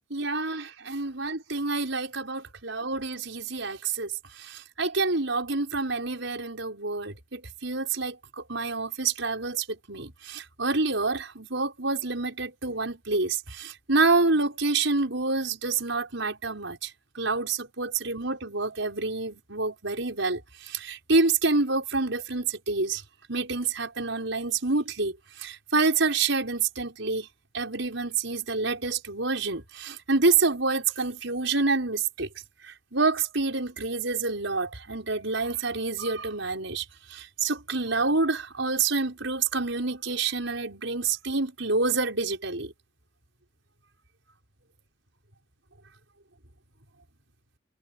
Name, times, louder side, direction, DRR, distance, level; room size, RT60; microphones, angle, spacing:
voice 1, 0.1-23.0 23.3-27.3 27.5-32.3 32.6-42.7, right 3 dB, 75° right, 5.6 m, -28 dB
head